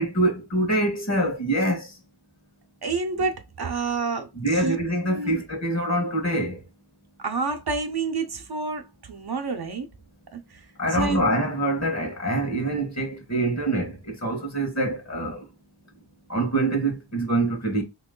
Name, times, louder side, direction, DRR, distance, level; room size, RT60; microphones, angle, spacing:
voice 1, 0.0-1.8 4.4-6.6 10.8-13.9 14.2-15.4 16.3-17.8, right 1 dB, 40° left, 1.5 m, -25 dB
voice 2, 2.8-4.8 5.1-5.4 7.2-9.9 10.3-10.4 10.9-11.3, right 4 dB, 60° right, 0.8 m, -29 dB
3.1 x 3.0 x 3.7 m
wide cardioid pair, 55°, 42 cm